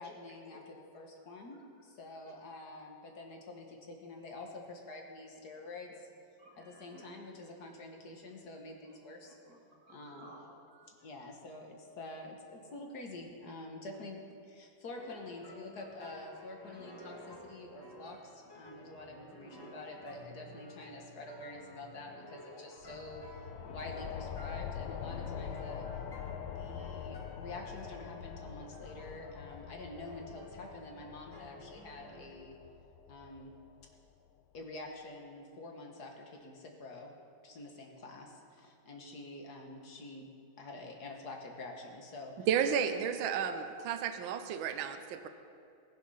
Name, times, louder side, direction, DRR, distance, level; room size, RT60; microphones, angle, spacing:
voice 1, 0.0-6.1 6.6-9.4 9.9-10.3 10.9-14.2 14.4-23.2 23.7-25.8 26.5-32.5 33.1-33.5 34.5-37.1 37.4-40.3 40.6-42.3 42.7-42.9 43.2-43.7, left 2 dB, 55° left, 2 dB, 1.7 m, -47 dB
voice 2, 1.5-1.9 2.2-2.4 6.4-7.1 8.8-9.0 9.2-11.1, right 1 dB, 45° right, -2 dB, 2.5 m, -58 dB
sound 1, 14.9-32.5, left 1 dB, 10° left, 1.8 m, -52 dB
sound 2, 22.8-34.0, left 8 dB, 70° left, 1.1 m, -44 dB
voice 3, 42.5-45.3, right 8 dB, 75° right, 8 dB, 1.4 m, -32 dB
19.5 x 6.5 x 5.6 m, 2.6 s
omnidirectional pair, 2.2 m